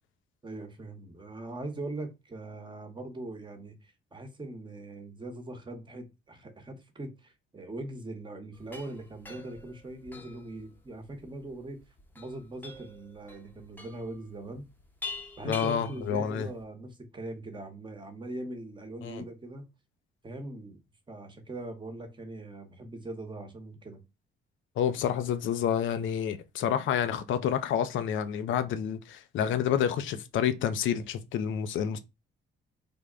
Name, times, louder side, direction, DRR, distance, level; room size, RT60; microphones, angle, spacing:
voice 1, 0.4-11.8 12.1-14.7 15.4-19.7 20.2-20.8 21.1-24.0, right 2 dB, 25° right, 0.9 m, -41 dB
sound 1, 8.5-16.6, left 3 dB, 10° left, 0.8 m, -45 dB
voice 2, 15.4-16.5 19.0-19.2 24.8-32.0, left 9 dB, 75° left, 0.5 m, -29 dB
3.4 x 2.2 x 3.6 m
cardioid pair, 90°, 20 cm